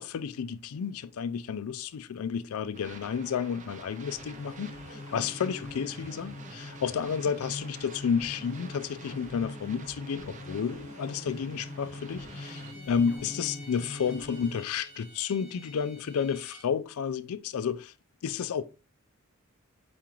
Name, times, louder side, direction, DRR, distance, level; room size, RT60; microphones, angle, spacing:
voice 1, 0.0-17.9 18.2-18.6, left 7 dB, 80° left, 0.4 m, -31 dB
sound 1, 2.7-12.7, right 4 dB, 35° right, 0.5 m, -49 dB
sound 2, 3.9-14.9, left 2 dB, 60° left, 0.8 m, -43 dB
Bowed string instrument, 12.2-16.7, right 1 dB, 55° right, 1.3 m, -51 dB
4.2 x 3.7 x 3.0 m
head